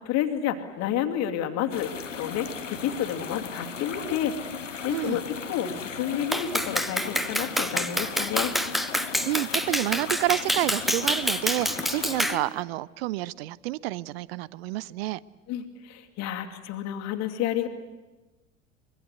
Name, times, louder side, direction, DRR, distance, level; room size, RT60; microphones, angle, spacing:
voice 1, 0.0-1.9 2.2-8.5 12.3-12.4 15.5-17.7, left 10 dB, 45° left, 5 dB, 2.5 m, -30 dB
sound 1, 1.7-12.4, left 6 dB, 80° left, 1.4 m, -37 dB
voice 2, 4.9-5.2 9.3-15.2, right 18 dB, 55° right, 22 dB, 0.7 m, -29 dB
Clapping, 6.3-12.4, equal, ahead, 1.0 m, -27 dB
25.0 x 22.5 x 8.1 m, 1.1 s
figure-of-eight pair, 75°, 37 cm